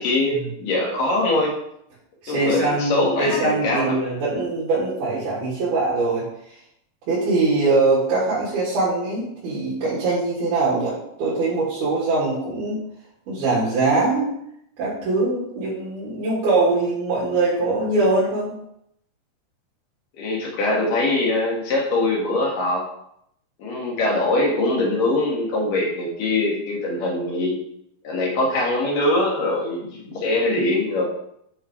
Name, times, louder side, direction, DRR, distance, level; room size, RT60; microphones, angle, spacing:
voice 1, 0.0-1.6 2.3-4.0 20.2-22.9 23.6-27.6 28.0-31.0, left 2 dB, 60° left, -2 dB, 3.5 m, -22 dB
voice 2, 2.2-6.2 7.1-12.8 13.3-14.3 14.8-18.5, right 3 dB, 80° right, -8 dB, 4.4 m, -22 dB
10.5 x 6.8 x 3.3 m, 0.75 s
omnidirectional pair, 4.4 m